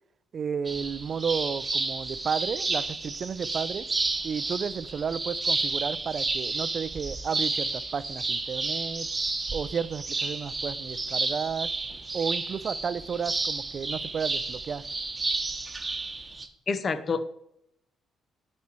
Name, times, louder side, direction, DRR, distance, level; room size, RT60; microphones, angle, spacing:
voice 1, 0.3-3.8 4.2-9.1 9.5-11.7 12.1-14.8, right 6 dB, 50° right, 0.3 m, -32 dB
sound 1, 0.6-16.5, right 3 dB, 25° right, 1.0 m, -31 dB
voice 2, 16.7-17.3, left 4 dB, 45° left, 0.8 m, -27 dB
9.5 x 4.3 x 4.4 m
cardioid pair, 90°, 0 cm